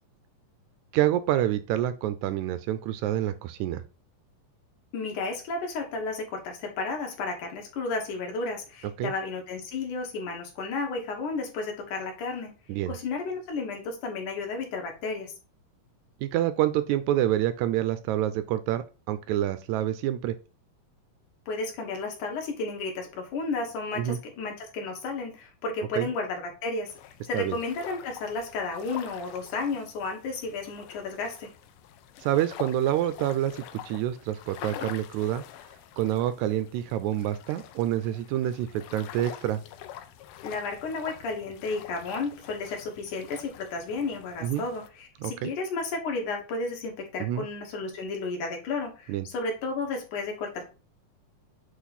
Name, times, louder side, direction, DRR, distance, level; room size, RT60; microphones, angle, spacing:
voice 1, 0.9-3.8 9.0-9.1 12.7-12.9 16.2-20.3 24.0-24.2 25.9-26.1 27.3-27.6 32.2-35.4 36.0-39.6 44.4-44.7 45.2-45.5 47.2-47.5 49.1-49.3, right 12 dB, 85° right, 12 dB, 1.7 m, -27 dB
voice 2, 4.9-12.5 12.9-15.3 21.5-26.9 27.2-31.5 40.4-50.6, left 3 dB, 70° left, 2 dB, 2.8 m, -33 dB
sound 1, 26.9-44.9, left 12 dB, 85° left, 2.2 m, -46 dB
7.4 x 3.2 x 4.1 m, 0.32 s
omnidirectional pair, 3.8 m